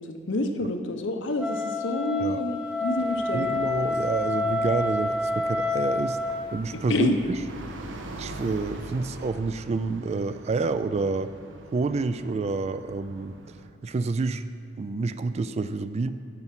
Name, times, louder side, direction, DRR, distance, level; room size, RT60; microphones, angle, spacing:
voice 1, 0.1-3.5 6.9-7.2, left 1 dB, 75° left, 6 dB, 0.8 m, -28 dB
Wind instrument woodwind instrument, 1.4-6.4, left 2 dB, 5° right, 0.7 m, -28 dB
sound 1, 3.0-9.3, equal, 50° right, 1.3 m, -45 dB
voice 2, 3.3-6.2 6.5-7.1 8.2-11.3 11.7-13.3 13.8-14.5 14.8-16.1, right 3 dB, 35° right, 12 dB, 0.3 m, -28 dB
sound 2, 7.5-13.7, right 2 dB, 70° right, 0.6 m, -43 dB
9.6 x 5.9 x 5.8 m, 2.7 s
head